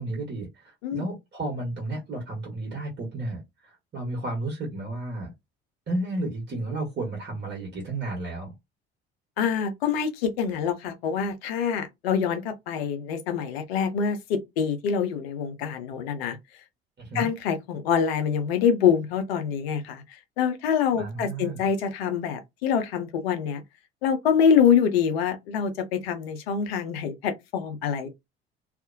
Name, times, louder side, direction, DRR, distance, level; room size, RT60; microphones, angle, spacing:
voice 1, 0.0-5.3 5.9-8.5 17.0-17.3 20.9-21.6, right 2 dB, 35° right, 1.2 m, -32 dB
voice 2, 9.4-16.4 17.1-20.0 20.4-23.6 24.0-28.1, left 7 dB, 70° left, 0.6 m, -25 dB
2.4 x 2.1 x 2.5 m
figure-of-eight pair, 55°, 31 cm